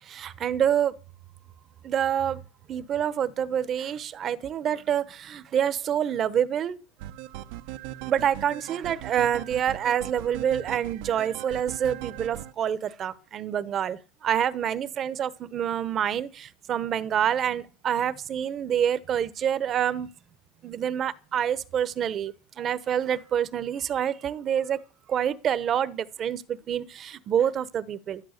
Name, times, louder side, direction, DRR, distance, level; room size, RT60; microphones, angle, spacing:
voice 1, 0.0-1.0 1.8-2.4 2.7-6.8 8.1-20.1 20.6-24.8 25.1-28.2, right 9 dB, 30° right, 1.0 m, -27 dB
sound 1, 7.0-12.5, right 14 dB, 65° right, 1.0 m, -39 dB
12.0 x 11.5 x 6.6 m
supercardioid pair, 150°, 0 cm